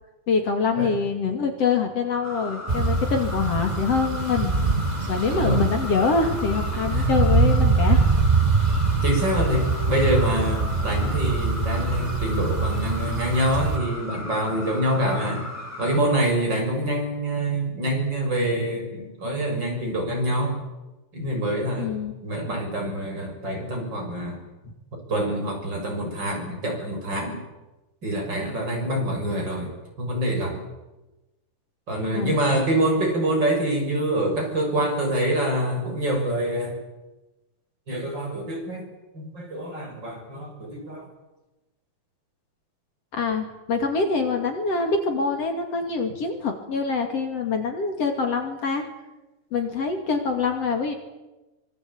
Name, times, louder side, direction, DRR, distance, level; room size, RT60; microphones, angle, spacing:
voice 1, 0.3-4.5 5.1-8.0 21.8-22.2 24.6-24.7 32.1-32.4 43.1-48.8 49.5-51.0, left 5 dB, 55° left, 4 dB, 3.4 m, -25 dB
sound 1, 2.2-16.0, left 1 dB, 5° left, 2.4 m, -37 dB
sound 2, 2.7-13.8, right 4 dB, 50° right, 0.4 m, -23 dB
voice 2, 5.3-5.7 6.9-7.4 9.0-15.5 15.8-20.6 21.1-21.9 22.2-24.4 25.1-27.4 28.0-30.6 31.9-36.8 37.9-38.8 39.1-41.1, right 1 dB, 35° right, 1 dB, 7.1 m, -26 dB
25.0 x 22.5 x 8.6 m, 1.1 s
omnidirectional pair, 3.4 m